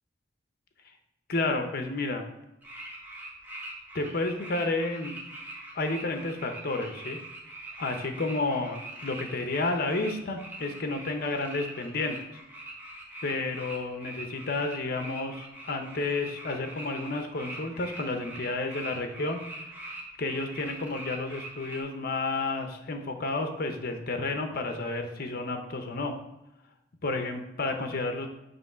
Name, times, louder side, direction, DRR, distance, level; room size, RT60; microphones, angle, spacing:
voice 1, 1.3-2.2 3.9-5.2 5.7-7.2 7.8-12.4 13.2-19.4 19.7-19.9 20.2-26.2 27.0-28.3, left 2 dB, 55° left, 5 dB, 0.8 m, -31 dB
sound 1, 2.6-21.8, right 1 dB, 10° right, 1.2 m, -43 dB
7.0 x 3.2 x 5.5 m, 0.90 s
head